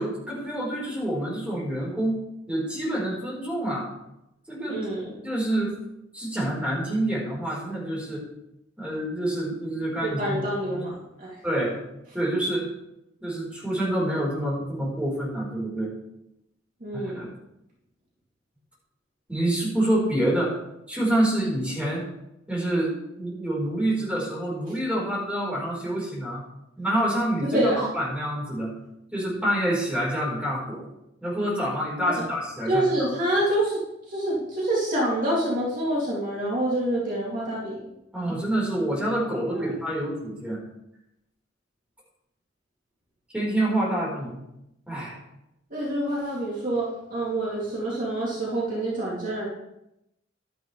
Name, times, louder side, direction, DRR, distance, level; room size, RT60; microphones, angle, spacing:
voice 1, 0.0-2.2 2.5-3.9 4.5-4.8 5.2-5.7 6.1-8.2 8.8-10.4 10.7-10.8 11.4-11.8 12.1-12.7 13.2-15.9 16.9-17.3 19.3-20.5 20.9-22.0 22.5-26.4 26.8-28.7 29.1-30.8 31.2-33.1 38.1-40.6 43.3-44.4 44.9-45.2, right 1 dB, 5° right, -5 dB, 4.5 m, -27 dB
voice 2, 4.7-5.2 10.0-11.4 16.8-17.3 27.4-27.9 32.2-32.3 32.7-33.8 34.1-37.9 39.4-39.7 45.7-49.5, right 1 dB, 45° right, -5 dB, 2.8 m, -27 dB
12.0 x 10.0 x 3.3 m, 0.85 s
head